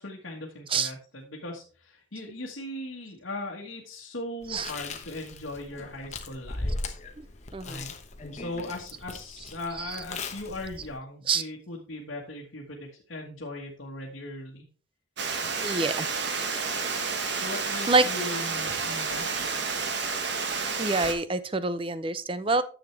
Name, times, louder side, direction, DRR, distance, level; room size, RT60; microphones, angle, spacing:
voice 1, 0.0-6.7 7.6-7.9 8.3-14.7 17.3-19.3, left 2 dB, 70° left, -2 dB, 1.5 m, -38 dB
Chewing mastication, 4.4-11.0, left 2 dB, 35° left, 1.0 m, -38 dB
voice 2, 7.5-7.8 9.8-10.0 11.3-11.4 15.6-16.1 17.9-18.1 20.8-22.6, right 3 dB, 25° right, 14 dB, 0.5 m, -26 dB
Water, 15.2-21.1, right 5 dB, 60° right, 1.3 m, -30 dB
10.0 x 7.2 x 3.3 m, 0.38 s
head